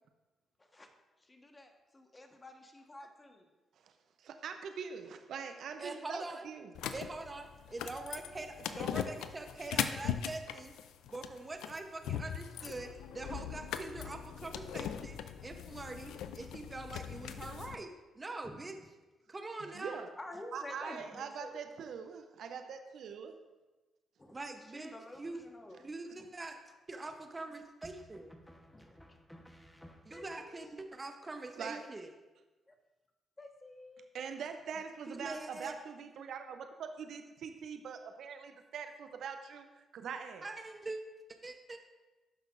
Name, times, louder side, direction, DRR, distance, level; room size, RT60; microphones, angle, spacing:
voice 1, 1.2-3.5 13.2-13.4 20.2-21.6 24.2-24.4 24.7-25.9 28.7-29.4 30.1-30.8 32.7-32.8 33.4-34.1, left 1 dB, 25° left, 4 dB, 1.3 m, -50 dB
voice 2, 4.2-6.7 19.6-20.1 20.5-23.3 31.6-31.8 34.1-39.7 39.9-40.5, right 6 dB, 70° right, 7 dB, 0.6 m, -43 dB
voice 3, 5.8-6.5 6.9-10.7 11.1-17.9 18.2-18.7 19.3-20.1 24.3-25.4 25.8-26.5 26.9-28.3 30.1-32.1 35.1-35.7 40.4-41.0 41.4-41.8, right 2 dB, 30° right, 5 dB, 0.8 m, -44 dB
sound 1, 6.7-17.7, left 9 dB, 80° left, 0.4 m, -40 dB
sound 2, 25.1-25.7 27.8-30.5, equal, 5° left, 1.1 m, -57 dB
12.0 x 5.8 x 2.5 m, 1.2 s
hypercardioid pair, 50°, 0 cm